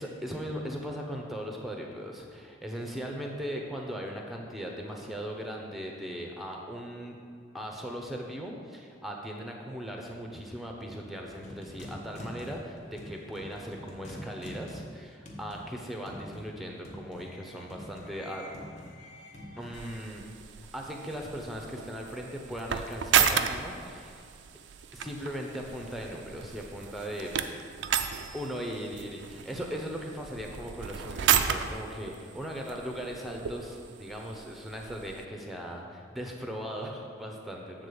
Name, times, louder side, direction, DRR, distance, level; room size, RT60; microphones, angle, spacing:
voice 1, 0.0-7.2 7.5-18.4 19.6-20.2 20.7-24.3 24.9-27.3 28.3-37.9, equal, ahead, 1 dB, 0.7 m, -38 dB
sound 1, 11.2-20.0, equal, 35° left, 1.1 m, -45 dB
sound 2, 19.7-35.2, right 8 dB, 60° right, 0.4 m, -33 dB
8.2 x 3.9 x 6.9 m, 2.3 s
head